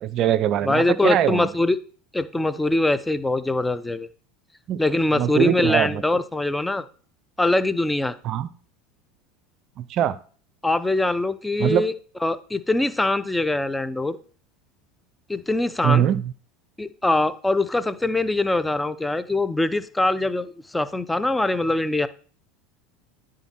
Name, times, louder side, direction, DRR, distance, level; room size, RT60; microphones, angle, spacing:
voice 1, 0.0-1.5 4.7-4.8 5.1-6.0 8.2-8.5 9.8-10.2 11.6-11.8 15.8-16.2, right 11 dB, 50° right, 17 dB, 0.5 m, -22 dB
voice 2, 0.6-1.8 2.1-4.1 4.8-6.8 7.4-8.2 10.6-11.9 12.2-14.2 15.3-16.0 16.8-22.1, left 2 dB, 10° left, 14 dB, 0.6 m, -23 dB
10.0 x 3.7 x 4.3 m, 0.42 s
hypercardioid pair, 95°, 0 cm